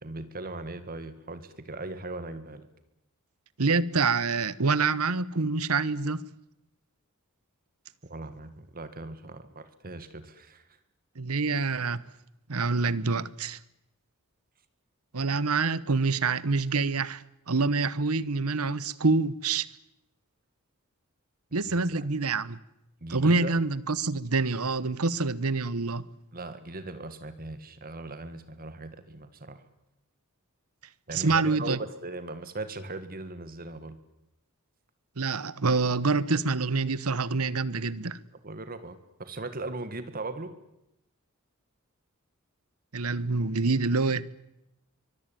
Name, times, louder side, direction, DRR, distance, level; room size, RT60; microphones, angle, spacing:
voice 1, 0.0-2.7 8.0-10.6 21.9-22.0 23.0-23.6 26.3-29.6 31.1-34.0 38.4-40.5, right 2 dB, 40° right, 1.9 m, -39 dB
voice 2, 3.6-6.2 11.2-12.0 12.5-13.6 15.1-19.7 21.5-22.6 23.1-26.0 31.1-31.8 35.2-38.2 42.9-44.3, right 4 dB, 90° right, 1.1 m, -26 dB
24.0 x 21.5 x 9.2 m
head